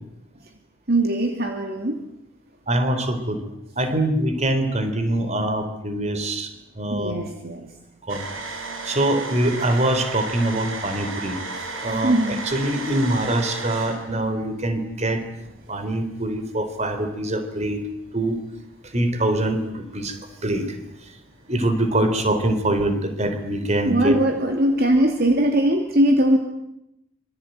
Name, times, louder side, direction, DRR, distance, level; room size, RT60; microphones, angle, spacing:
voice 1, 0.9-2.0 6.9-7.7 12.0-12.4 23.8-26.4, right 1 dB, 50° right, 4 dB, 2.9 m, -20 dB
voice 2, 2.7-3.4 3.8-6.5 6.8-7.1 8.1-8.2 8.8-11.4 11.8-15.2 15.7-17.9 18.1-18.4 18.9-20.8 21.5-24.1, right 1 dB, 30° right, 8 dB, 3.8 m, -24 dB
sound 1, 8.1-15.7 16.2-16.3 17.8-18.4 19.4-23.6 23.8-24.1 24.4-25.6, right 3 dB, 70° right, 6.2 m, -35 dB
26.5 x 24.0 x 9.3 m, 0.85 s
head